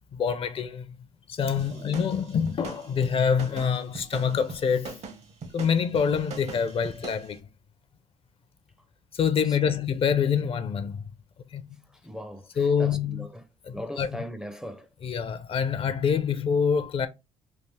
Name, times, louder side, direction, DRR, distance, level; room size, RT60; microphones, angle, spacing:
voice 1, 0.1-0.9 1.3-4.9 5.5-7.4 9.1-11.0 11.5-11.6 12.6-13.3 13.7-14.1 15.0-17.1, left 7 dB, 45° left, 0.5 m, -26 dB
sound 1, 1.6-7.3, right 4 dB, 55° right, 0.9 m, -41 dB
voice 2, 11.9-14.9, equal, 5° right, 0.5 m, -40 dB
3.4 x 2.4 x 3.2 m
cardioid pair, 85°, 13 cm